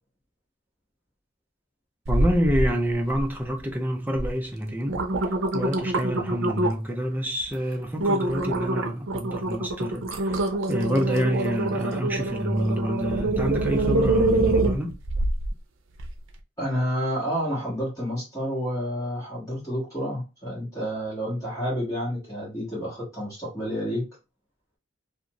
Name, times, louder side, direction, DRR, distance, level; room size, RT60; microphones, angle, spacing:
sound 1, 2.0-2.7 3.1-3.6 4.1-4.3 4.7-6.9 7.4-7.6 8.0-15.5 16.0-16.1, right 2 dB, 85° right, 0.5 m, -25 dB
voice 1, 2.1-15.0, equal, 10° right, 0.4 m, -28 dB
voice 2, 16.6-24.0, equal, 15° left, 1.3 m, -29 dB
2.5 x 2.4 x 2.9 m
head